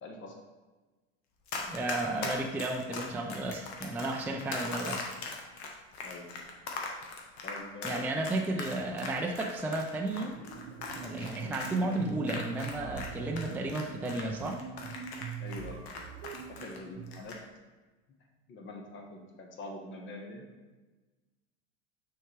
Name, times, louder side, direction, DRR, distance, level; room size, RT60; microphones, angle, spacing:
voice 1, 0.0-0.3 6.0-6.5 7.4-8.2 11.3-12.1 15.4-15.8 16.5-17.4 18.5-20.4, left 2 dB, 40° left, 2 dB, 1.2 m, -44 dB
Run, 1.5-13.1 13.4-16.8 17.1-17.4, left 4 dB, 80° left, 1.2 m, -39 dB
voice 2, 1.7-5.0 7.8-10.3 11.0-14.6, right 2 dB, 5° right, 1 dB, 0.4 m, -33 dB
sound 1, 10.1-17.3, right 7 dB, 70° right, 0.8 m, -43 dB
6.2 x 4.6 x 3.4 m, 1.2 s
supercardioid pair, 115°, 31 cm